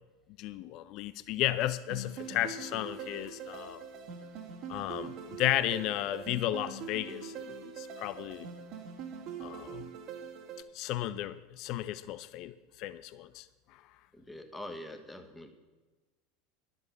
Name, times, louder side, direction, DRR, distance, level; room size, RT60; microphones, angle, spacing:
voice 1, 0.4-3.8 4.7-7.3 7.6-8.5 9.4-9.9 10.7-13.5, left 14 dB, 50° left, 15 dB, 0.6 m, -34 dB
sound 1, 1.9-10.6, right 5 dB, 50° right, 1.8 m, -43 dB
voice 2, 14.1-15.5, left 1 dB, 5° left, 5 dB, 1.8 m, -44 dB
11.5 x 8.0 x 7.4 m, 1.2 s
hypercardioid pair, 80°, 0 cm